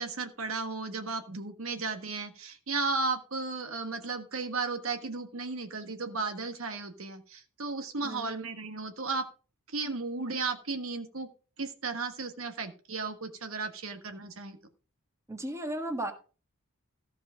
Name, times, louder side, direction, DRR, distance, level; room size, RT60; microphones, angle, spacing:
voice 1, 0.0-9.3 9.7-11.3 11.6-14.6, right 3 dB, 65° right, 1.4 m, -34 dB
voice 2, 15.3-16.1, right 1 dB, 15° right, 1.5 m, -34 dB
14.5 x 4.9 x 6.2 m
head